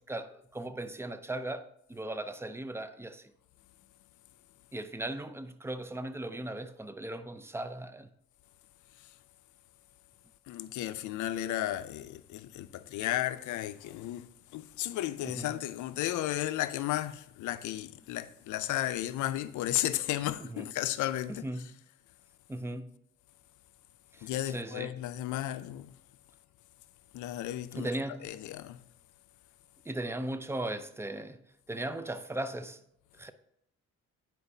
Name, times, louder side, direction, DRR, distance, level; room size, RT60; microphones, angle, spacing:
voice 1, 0.1-3.3 4.7-8.1 15.2-15.5 20.5-20.7 21.3-21.7 22.5-22.9 24.1-24.9 27.8-28.4 29.9-32.8 33.2-33.3, right 1 dB, 10° right, 0.4 m, -38 dB
voice 2, 10.5-21.6 24.2-25.9 27.1-27.9 28.2-28.8, left 13 dB, 80° left, 0.5 m, -34 dB
9.6 x 4.5 x 2.7 m
cardioid pair, 90°, 30 cm